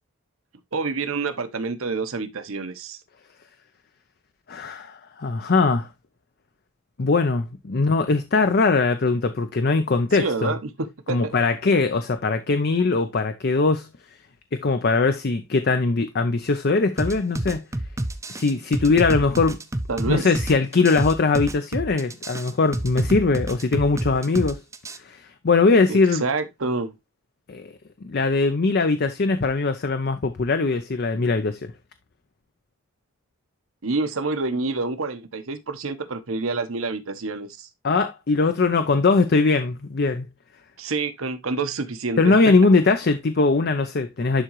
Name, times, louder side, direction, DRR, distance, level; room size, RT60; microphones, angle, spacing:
voice 1, 0.7-3.0 10.1-11.4 19.9-20.3 25.9-26.9 33.8-37.7 40.8-42.4, right 3 dB, 70° right, 1.0 m, -28 dB
voice 2, 4.5-5.9 7.0-10.5 11.1-13.9 14.5-17.6 18.3-19.6 20.1-24.6 25.0-26.2 27.5-27.7 28.0-31.7 37.8-40.3 42.2-44.4, left 3 dB, 50° left, 0.6 m, -21 dB
sound 1, 17.0-25.0, right 1 dB, 15° right, 0.6 m, -29 dB
11.0 x 3.8 x 3.0 m
head